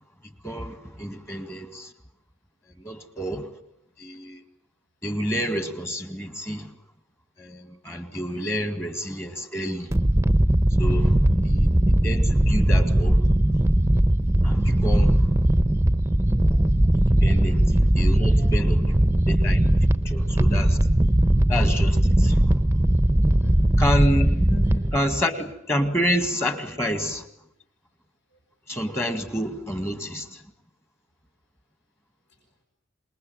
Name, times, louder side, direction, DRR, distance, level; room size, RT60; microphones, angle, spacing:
voice 1, 0.4-1.9 2.8-3.5 4.0-4.4 5.0-6.7 7.4-9.9 10.8-11.2 11.5-11.7 12.0-13.2 14.4-15.2 16.9-19.6 20.1-20.8 21.5-22.5 23.8-24.3 24.9-27.3 28.7-30.4, equal, 15° left, 9 dB, 2.0 m, -28 dB
sound 1, 9.9-25.0, right 1 dB, 15° right, 1.0 m, -19 dB
voice 2, 16.3-16.6 17.3-17.6 18.4-18.5 18.7-19.2 20.0-20.1 23.4-23.7 24.5-24.9, left 3 dB, 70° left, 0 dB, 6.3 m, -41 dB
27.5 x 21.0 x 8.9 m, 0.74 s
head